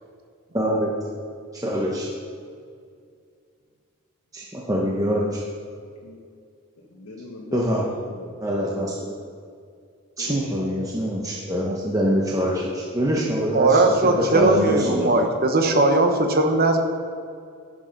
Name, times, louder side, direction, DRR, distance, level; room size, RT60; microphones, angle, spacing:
voice 1, 0.5-0.9 1.5-2.1 4.3-5.4 7.5-7.8 8.4-9.2 10.2-15.1, equal, 15° right, -3 dB, 0.9 m, -24 dB
voice 2, 6.9-8.3 10.2-10.9 11.4-13.1, left 1 dB, 85° left, -2 dB, 1.2 m, -39 dB
voice 3, 13.5-16.8, right 2 dB, 40° right, 4 dB, 0.9 m, -19 dB
10.5 x 6.3 x 5.3 m, 2.3 s
head